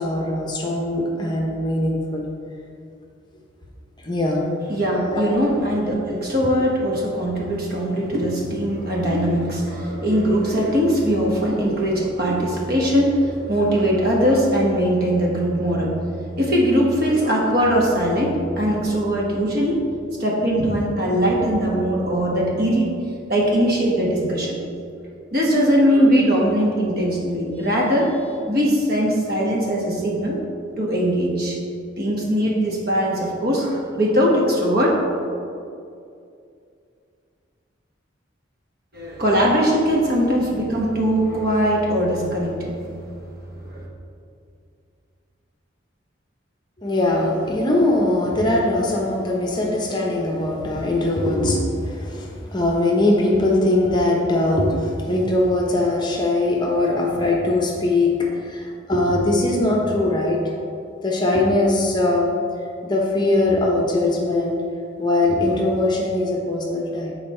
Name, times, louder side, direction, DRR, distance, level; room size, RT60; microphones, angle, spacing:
voice 1, 0.0-2.3 4.0-4.5 5.1-5.3 46.8-60.4 61.0-62.3 62.8-64.6 65.0-67.1, left 2 dB, 20° left, -1 dB, 0.7 m, -21 dB
voice 2, 4.7-16.0 16.4-19.8 20.2-22.9 23.3-24.6 25.3-28.1 28.5-30.4 30.8-31.6 32.0-35.0 38.9-42.8 43.6-43.9, equal, 50° right, -3 dB, 1.2 m, -20 dB
7.5 x 4.4 x 4.3 m, 2.5 s
head